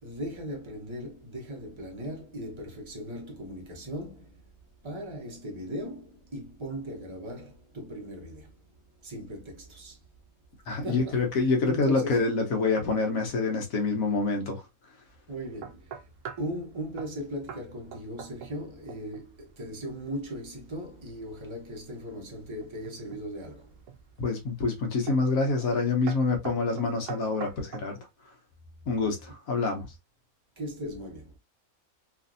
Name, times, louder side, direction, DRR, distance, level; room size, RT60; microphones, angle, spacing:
voice 1, 0.0-4.5 4.8-8.6 9.0-10.0 10.7-12.1 15.3-16.1 16.4-23.8 30.6-31.4, equal, 25° right, 0.8 m, -38 dB
voice 2, 10.7-14.6 24.2-28.0 28.9-29.9, left 3 dB, 75° left, 1.3 m, -26 dB
sound 1, 15.6-16.5 17.0-17.2 17.5-17.7 17.9-18.6 18.9-19.3 22.6-23.3 23.9-24.3 25.1-25.3 25.6-25.8 26.1-27.9, right 8 dB, 70° right, 0.8 m, -42 dB
3.1 x 2.5 x 2.5 m
omnidirectional pair, 1.5 m